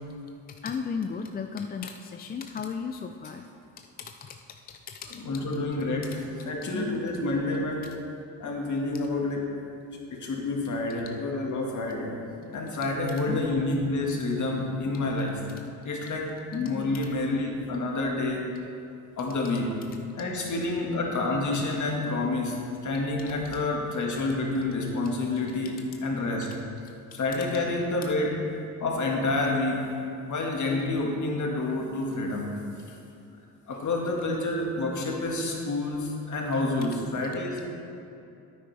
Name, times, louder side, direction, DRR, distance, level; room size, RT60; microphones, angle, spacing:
voice 1, 0.5-3.4 4.0-4.4 4.9-5.2 6.7-7.0 13.3-13.5 16.5-16.8, left 6 dB, 25° left, 5 dB, 0.4 m, -34 dB
voice 2, 5.1-7.9 8.4-9.5 10.1-12.1 12.5-15.4 15.8-18.4 19.2-19.7 20.1-25.7 26.0-26.5 27.1-28.3 28.8-29.8 30.3-32.5 33.7-37.6, left 2 dB, 45° left, 0 dB, 1.8 m, -28 dB
9.5 x 8.7 x 3.4 m, 2.6 s
supercardioid pair, 80°, 39 cm